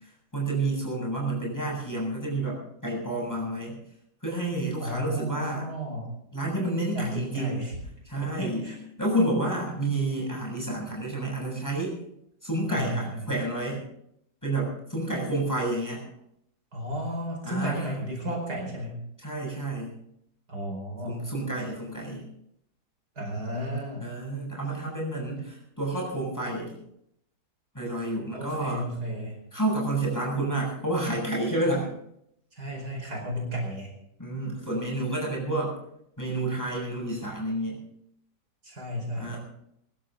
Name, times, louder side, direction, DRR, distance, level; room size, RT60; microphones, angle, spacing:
voice 1, 0.3-3.8 4.2-5.7 6.3-7.6 8.0-8.7 9.0-12.0 12.4-13.8 14.4-16.0 17.4-18.0 19.2-19.9 21.0-22.2 24.0-26.7 27.7-28.9 29.5-31.9 33.3-33.4 34.2-35.8 36.2-37.8 39.1-39.4, right 2 dB, 10° left, -2 dB, 7.6 m, -29 dB
voice 2, 4.8-6.1 6.8-7.8 8.2-8.8 12.7-13.3 16.7-19.0 20.5-21.3 23.2-24.1 28.3-29.4 32.5-33.9 38.6-39.4, equal, 65° right, 0 dB, 5.5 m, -33 dB
25.0 x 12.5 x 3.9 m, 0.75 s
omnidirectional pair, 1.8 m